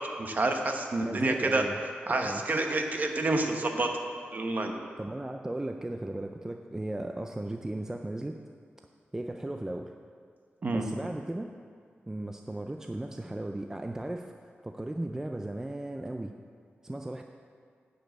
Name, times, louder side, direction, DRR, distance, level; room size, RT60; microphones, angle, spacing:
voice 1, 0.2-1.6 2.1-3.9 4.3-4.7 10.6-10.8, right 2 dB, 45° right, 3 dB, 1.1 m, -28 dB
voice 2, 1.0-1.8 2.1-2.4 5.0-8.4 9.1-9.9 10.7-11.5 12.1-16.3 16.8-17.2, right 1 dB, 15° right, 4 dB, 0.4 m, -36 dB
10.0 x 5.3 x 8.0 m, 2.2 s
wide cardioid pair, 120°, 4 cm